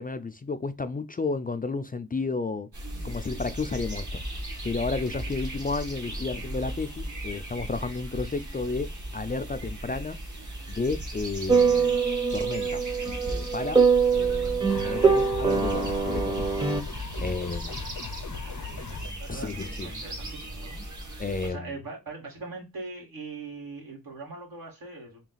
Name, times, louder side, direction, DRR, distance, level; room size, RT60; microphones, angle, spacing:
voice 1, 0.0-2.7 3.0-4.2 4.6-10.2 10.7-11.9 12.3-12.9 13.3-13.8 14.1-16.8 17.2-17.8 19.3-19.9 21.2-21.7, left 3 dB, 25° left, 0.4 m, -32 dB
sound 1, 2.7-21.5, right 1 dB, 55° right, 1.4 m, -37 dB
guitar-tuning, 11.5-16.8, right 5 dB, 15° right, 0.7 m, -23 dB
sound 2, 14.7-19.1, left 6 dB, 75° left, 0.7 m, -38 dB
voice 2, 18.2-25.2, right 3 dB, 80° right, 2.0 m, -42 dB
4.0 x 2.3 x 3.8 m
cardioid pair, 55°, 34 cm